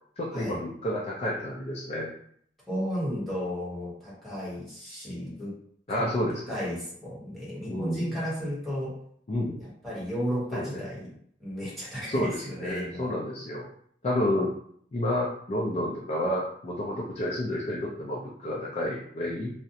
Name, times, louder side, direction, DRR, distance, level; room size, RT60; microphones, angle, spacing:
voice 1, 0.2-2.1 5.9-6.6 7.7-8.2 9.3-9.6 10.5-10.9 12.1-13.7 14.0-14.5 14.9-19.5, left 1 dB, 35° left, -4 dB, 0.4 m, -30 dB
voice 2, 2.7-5.5 5.9-6.2 6.5-8.9 9.6-11.1 11.4-13.1, equal, ahead, -8 dB, 1.0 m, -33 dB
2.4 x 2.0 x 2.7 m, 0.64 s
head